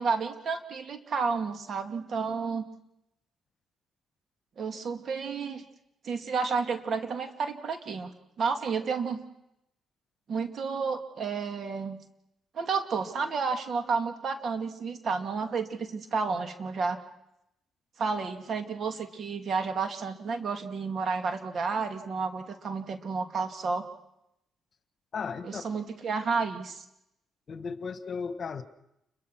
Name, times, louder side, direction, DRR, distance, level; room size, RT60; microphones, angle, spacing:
voice 1, 0.0-2.7 4.6-5.6 6.0-8.1 8.4-9.2 10.3-12.0 12.5-17.0 18.0-23.8 25.4-26.8, right 5 dB, 55° right, 7 dB, 2.6 m, -31 dB
voice 2, 25.1-25.6 27.5-28.6, left 5 dB, 50° left, 11 dB, 1.6 m, -35 dB
29.0 x 22.5 x 6.2 m, 0.84 s
cardioid pair, 80°, 0 cm